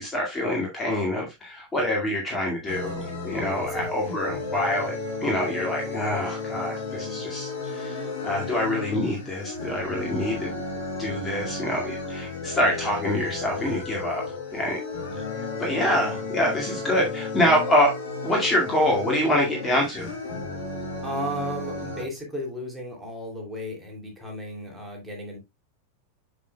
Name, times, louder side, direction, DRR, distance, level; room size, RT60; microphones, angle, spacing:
voice 1, 0.0-4.9 5.2-10.6 11.0-14.2 14.5-14.8 15.6-20.1, left 1 dB, 15° left, 2.0 m, -26 dB
sound 1, 2.7-22.0, left 3 dB, 55° left, 3.6 m, -33 dB
voice 2, 3.7-4.2 15.9-16.2 21.0-25.4, equal, 5° right, 2.8 m, -34 dB
7.2 x 6.4 x 2.3 m
figure-of-eight pair, 90°, 0 cm